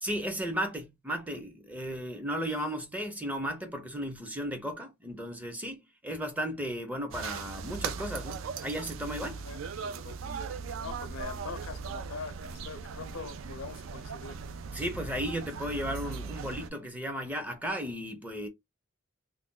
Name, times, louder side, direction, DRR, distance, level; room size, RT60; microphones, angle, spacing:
voice 1, 0.0-9.4 14.7-18.5, equal, 10° right, 0.5 m, -35 dB
sound 1, 7.1-16.7, right 5 dB, 75° right, 0.4 m, -39 dB
voice 2, 9.2-10.2 10.8-14.4, left 5 dB, 85° left, 0.5 m, -43 dB
2.5 x 2.1 x 3.6 m
head